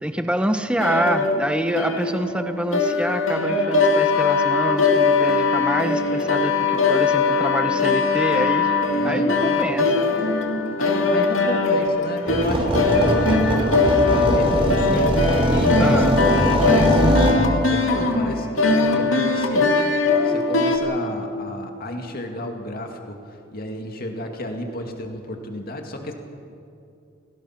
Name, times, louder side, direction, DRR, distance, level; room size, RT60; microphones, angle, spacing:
voice 1, 0.0-8.8 9.0-10.1 15.8-16.2, right 1 dB, 5° right, 8 dB, 1.0 m, -26 dB
sound 1, 0.8-20.8, left 3 dB, 75° left, 2.3 m, -21 dB
voice 2, 8.9-9.7 10.8-17.2 17.5-26.1, left 1 dB, 45° left, 3 dB, 2.3 m, -32 dB
sound 2, 12.3-17.3, equal, 30° right, 3.9 m, -21 dB
29.0 x 17.5 x 5.9 m, 2.5 s
head